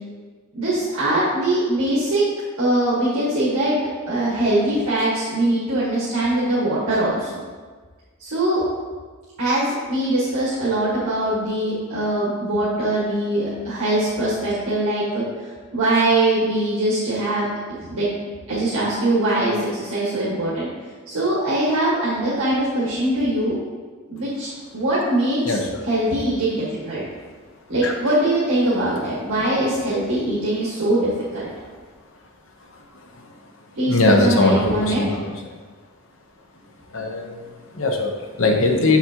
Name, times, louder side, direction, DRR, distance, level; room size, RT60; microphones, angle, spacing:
voice 1, 0.5-2.2 2.6-3.7 4.1-7.3 8.2-8.6 9.4-18.1 18.5-20.7 21.1-23.6 24.1-25.5 25.8-27.0 27.7-31.5 33.7-35.0, right 1 dB, 75° right, -8 dB, 1.7 m, -22 dB
voice 2, 33.9-35.3 36.9-39.0, left 2 dB, 65° left, 2 dB, 0.8 m, -20 dB
7.1 x 5.9 x 2.9 m, 1.5 s
head